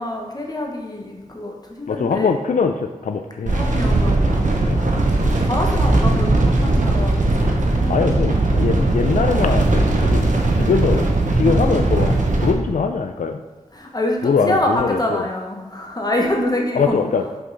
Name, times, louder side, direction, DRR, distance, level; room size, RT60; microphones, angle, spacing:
voice 1, 0.0-2.4 3.5-5.0 5.3-8.0 10.5-10.9 13.7-17.0, left 1 dB, 30° left, 0 dB, 1.2 m, -26 dB
voice 2, 1.9-3.6 4.7-4.9 7.9-13.4 14.2-15.2 16.8-17.2, left 5 dB, 80° left, 6 dB, 0.4 m, -22 dB
sound 1, 3.5-12.5, right 2 dB, 75° right, 1.0 m, -18 dB
sound 2, 5.8-10.0 10.5-10.6, right 1 dB, 20° right, 0.6 m, -29 dB
5.9 x 5.5 x 4.0 m, 1.3 s
wide cardioid pair, 80°, 13 cm